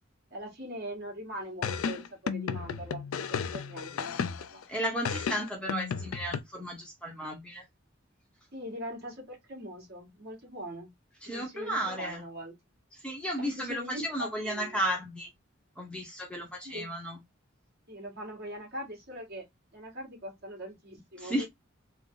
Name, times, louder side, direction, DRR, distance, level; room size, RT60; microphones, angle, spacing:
voice 1, 0.3-4.6 8.5-10.9 11.3-12.5 13.4-14.8 16.6-16.9 17.9-19.5 19.7-21.5, equal, 50° right, 1.8 m, -41 dB
sound 1, 1.6-4.6 5.0-6.4, left 6 dB, 80° left, 0.4 m, -33 dB
voice 2, 4.7-7.6 11.2-12.2 12.9-15.3 15.8-17.2 21.2-21.5, equal, 5° left, 0.8 m, -34 dB
3.7 x 2.1 x 3.7 m
head